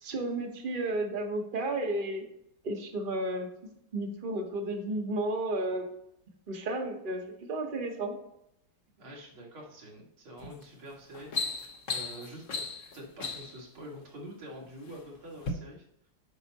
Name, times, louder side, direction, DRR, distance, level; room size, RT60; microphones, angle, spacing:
voice 1, 0.0-2.2 2.6-3.5 3.9-5.9 6.5-8.2, right 2 dB, 35° right, 3 dB, 0.9 m, -32 dB
voice 2, 9.0-12.6 12.9-15.9, equal, 85° right, -3 dB, 2.7 m, -46 dB
sound 1, 10.4-10.6 11.0-13.6 14.4-15.0 15.4-15.5, left 4 dB, 50° left, 1.1 m, -35 dB
8.0 x 5.7 x 2.9 m, 0.78 s
omnidirectional pair, 2.2 m